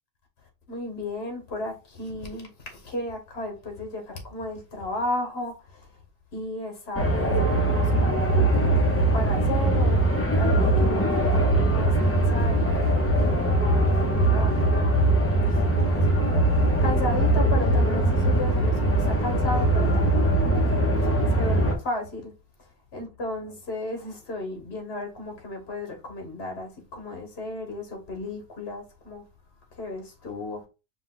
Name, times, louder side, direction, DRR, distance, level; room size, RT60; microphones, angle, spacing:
voice 1, 0.7-5.9 6.3-10.0 10.3-15.2 15.7-16.0 16.2-22.3 22.9-29.2 29.8-30.7, left 2 dB, 70° left, 1.5 m, -34 dB
sound 1, 7.0-21.7, right 1 dB, 15° left, 0.8 m, -21 dB
4.9 x 2.3 x 3.7 m
omnidirectional pair, 1.1 m